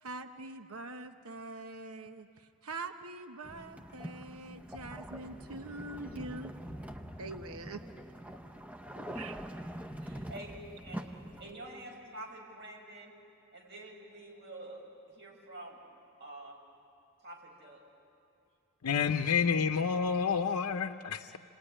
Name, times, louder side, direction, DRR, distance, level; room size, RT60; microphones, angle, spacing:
voice 1, 0.0-2.3 2.6-6.5 7.2-7.8 9.1-9.4, right 2 dB, 75° right, 7 dB, 1.0 m, -43 dB
sound 1, 3.4-11.5, equal, 5° right, 0.8 m, -44 dB
voice 2, 10.0-10.5 10.8-11.1 11.4-13.1 13.5-14.8 15.1-15.8 16.2-16.6 17.2-17.8, right 1 dB, 50° right, 0 dB, 5.8 m, -47 dB
voice 3, 18.8-21.4, left 6 dB, 90° left, 7 dB, 0.7 m, -29 dB
27.5 x 19.0 x 10.0 m, 2.8 s
head